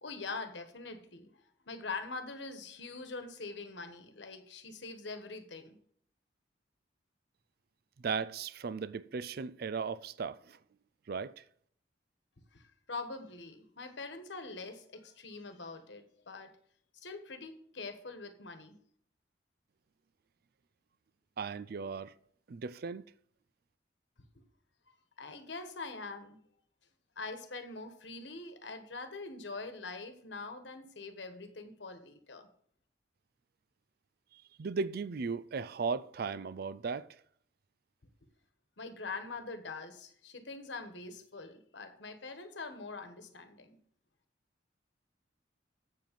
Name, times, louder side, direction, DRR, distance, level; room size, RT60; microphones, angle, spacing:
voice 1, 0.0-1.3 1.6-5.8 12.5-16.5 16.9-18.8 24.3-24.4 25.2-26.4 27.2-32.5 38.8-43.8, left 3 dB, 70° left, 1.3 m, -44 dB
voice 2, 8.0-10.6 11.1-11.4 21.4-22.1 22.5-23.0 34.3-37.1, right 5 dB, 55° right, 0.4 m, -36 dB
7.6 x 7.4 x 5.2 m
head